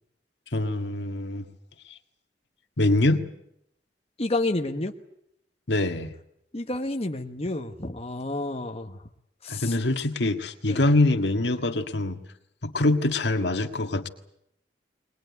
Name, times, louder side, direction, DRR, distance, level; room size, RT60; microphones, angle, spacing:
voice 1, 0.5-1.5 1.9-2.0 2.8-3.2 5.7-6.1 9.5-12.2 12.6-14.1, left 2 dB, 80° left, 7 dB, 1.7 m, -24 dB
voice 2, 4.2-4.9 6.5-9.0 9.4-9.8 10.7-10.8, left 2 dB, 35° left, 4 dB, 1.2 m, -30 dB
22.0 x 20.0 x 9.5 m, 0.77 s
head